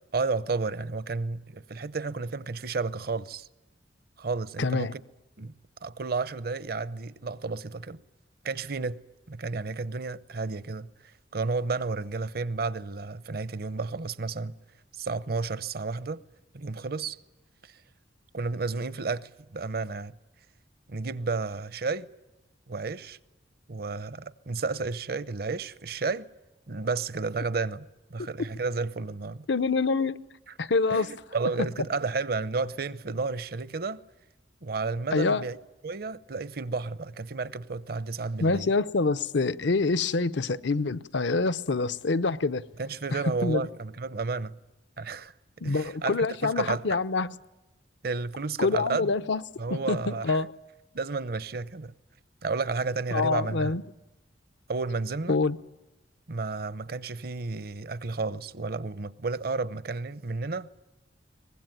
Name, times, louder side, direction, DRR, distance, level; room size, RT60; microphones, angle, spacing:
voice 1, 0.1-3.5 4.2-5.0 5.4-5.5 5.8-8.0 8.4-14.5 14.9-16.2 16.5-17.2 17.6-17.7 18.3-20.2 20.9-22.1 22.7-23.2 23.7-26.3 26.7-29.5 30.9-34.0 34.6-35.6 35.8-38.7 42.8-44.6 45.0-45.3 45.6-46.9 48.0-49.1 49.6-50.4 50.9-51.9 52.4-53.7 54.7-55.4 56.3-60.7, right 4 dB, 55° right, 0.7 m, -32 dB
voice 2, 4.6-4.9 29.5-30.3 30.6-31.1 35.1-35.4 38.4-42.6 43.4-43.7 45.6-47.3 48.6-49.4 49.7-50.5 53.1-53.8 55.3-55.6, left 3 dB, 75° left, 0.8 m, -26 dB
23.5 x 20.5 x 9.2 m
head